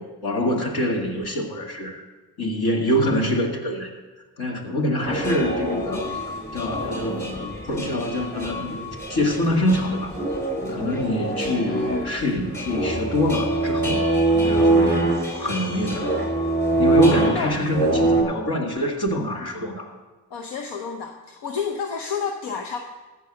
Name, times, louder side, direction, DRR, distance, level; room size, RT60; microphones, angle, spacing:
voice 1, 0.0-2.0 2.4-3.9 4.4-6.2 6.5-8.8 9.1-10.1 10.6-16.2 16.8-19.9, left 1 dB, 70° left, 1 dB, 2.2 m, -25 dB
sound 1, 5.0-18.2, right 2 dB, 25° left, 4.0 m, -24 dB
voice 2, 11.6-12.1 17.0-17.6 17.9-18.1 20.3-22.8, left 6 dB, 85° left, 4 dB, 0.8 m, -30 dB
14.5 x 4.9 x 7.6 m, 1.2 s
supercardioid pair, 45°, 40 cm